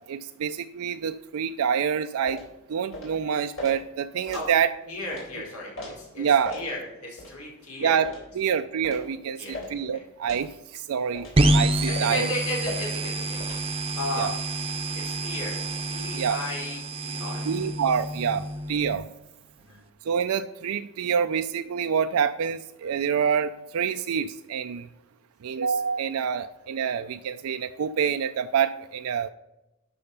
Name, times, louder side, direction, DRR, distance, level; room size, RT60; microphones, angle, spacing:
voice 1, 0.1-2.4 2.7-4.7 6.2-6.6 7.8-8.1 8.3-12.3 14.2-14.3 16.1-16.4 17.5-19.0 20.1-24.9 25.4-29.3, right 7 dB, 75° right, 8 dB, 0.4 m, -27 dB
sound 1, 2.3-2.5 2.9-3.1 3.6-3.7 4.3-4.5 5.1-5.3 5.8-5.9 6.4-6.7 7.2-7.3 8.0-8.3 8.8-9.1 9.5-9.7 10.3-10.5 11.1-11.4 11.9-12.2 12.6-12.8 13.4-13.6, left 2 dB, 65° left, 3.6 m, -38 dB
voice 2, 4.8-6.2 6.5-8.0 9.4-9.6 9.9-10.0 11.9-13.4 13.9-14.3 14.9-15.5 15.9-17.7 19.7-19.8, left 1 dB, 85° left, -2 dB, 4.3 m, -34 dB
sound 2, 11.4-19.0, right 1 dB, 25° right, 0.7 m, -27 dB
12.0 x 5.6 x 5.5 m, 0.96 s
head